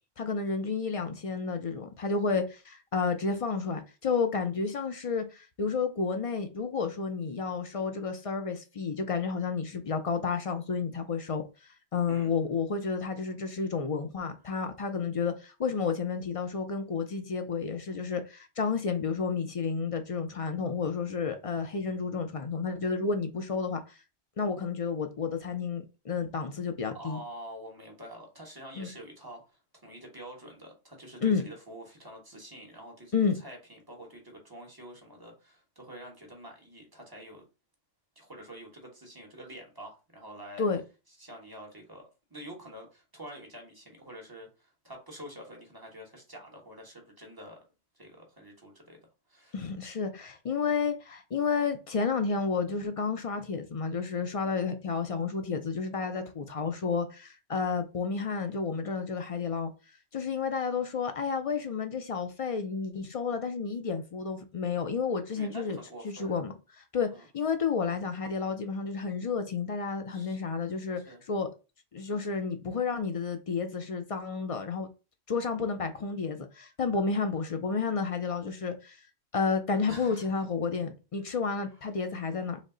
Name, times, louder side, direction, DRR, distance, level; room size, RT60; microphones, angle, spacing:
voice 1, 0.2-11.4 11.9-24.0 24.4-27.2 28.8-28.9 31.2-31.4 33.1-33.4 40.6-40.8 49.5-59.7 60.1-65.8 66.0-67.1 67.3-71.0 71.3-71.5 71.9-74.9 75.3-79.0 79.3-82.6, left 5 dB, 55° left, 0.3 m, -31 dB
voice 2, 12.1-12.4 26.9-37.4 38.1-40.7 41.2-47.6 47.9-49.0 49.3-49.6 54.4-54.6 65.3-66.4 67.1-67.2 70.1-70.4 71.0-71.2 79.9-80.3 81.7-81.8, right 1 dB, 20° right, 1.1 m, -47 dB
5.1 x 2.1 x 3.7 m
omnidirectional pair, 1.2 m